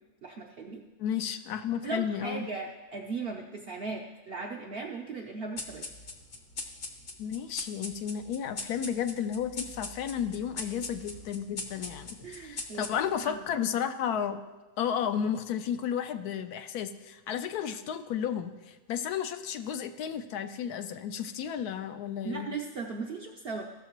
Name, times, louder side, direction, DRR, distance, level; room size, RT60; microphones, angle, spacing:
voice 1, 0.2-0.8 1.8-5.8 10.6-10.7 12.2-12.9 13.2-13.6 22.2-23.6, right 4 dB, 60° right, 1 dB, 0.6 m, -38 dB
voice 2, 1.0-2.5 7.2-14.4 14.8-22.5, left 8 dB, 75° left, 8 dB, 1.1 m, -33 dB
sound 1, 5.6-13.3, left 3 dB, 45° left, 0.8 m, -41 dB
14.5 x 6.4 x 3.0 m, 1.2 s
omnidirectional pair, 1.7 m